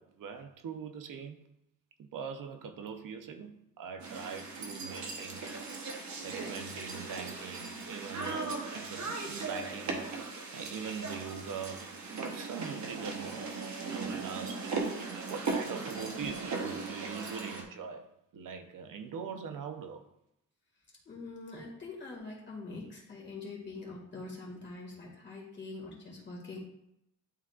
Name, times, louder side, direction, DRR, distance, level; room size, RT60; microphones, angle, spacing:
voice 1, 0.0-1.4 2.0-5.6 6.2-13.6 13.9-14.8 15.3-18.1 18.3-20.0, right 6 dB, 85° right, 0.7 m, -42 dB
sound 1, 4.0-17.6, right 3 dB, 60° right, 1.0 m, -38 dB
voice 2, 21.1-26.6, left 3 dB, 35° left, 1.9 m, -44 dB
11.0 x 3.7 x 2.4 m
wide cardioid pair, 175°, 31 cm